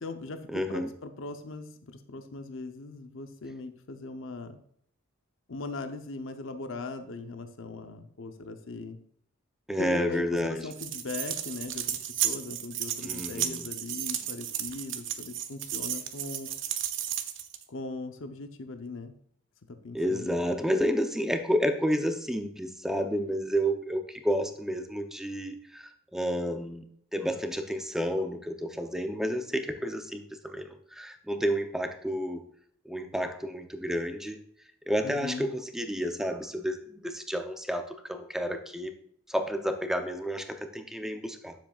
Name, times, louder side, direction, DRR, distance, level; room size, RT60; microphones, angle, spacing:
voice 1, 0.0-4.6 5.5-9.0 9.8-16.5 17.7-19.1 19.7-20.4 35.0-35.5, left 3 dB, 65° left, 7 dB, 0.7 m, -39 dB
voice 2, 0.5-0.9 9.7-10.7 13.0-13.7 19.9-26.8 27.1-32.4 32.8-34.4 34.9-38.9 39.3-41.5, equal, ahead, 6 dB, 0.6 m, -30 dB
sound 1, 10.7-17.6, right 10 dB, 60° right, 0.7 m, -33 dB
9.4 x 7.4 x 2.4 m, 0.66 s
head